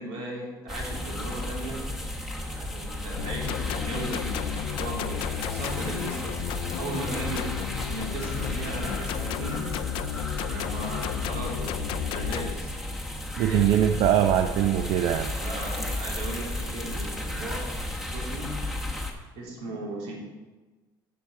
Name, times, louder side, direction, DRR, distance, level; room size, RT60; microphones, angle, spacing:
voice 1, 0.0-9.8 10.4-12.7 13.3-13.7 14.5-14.9 15.3-18.6 19.4-20.2, right 1 dB, 90° right, -2 dB, 3.2 m, -37 dB
sound 1, 0.7-19.1, left 1 dB, 5° right, 1.0 m, -33 dB
sound 2, 3.2-12.5, left 14 dB, 65° left, 0.4 m, -33 dB
voice 2, 13.4-15.3, right 10 dB, 65° right, 7 dB, 0.5 m, -22 dB
14.0 x 7.0 x 4.5 m, 1.3 s
cardioid pair, 170°, 9 cm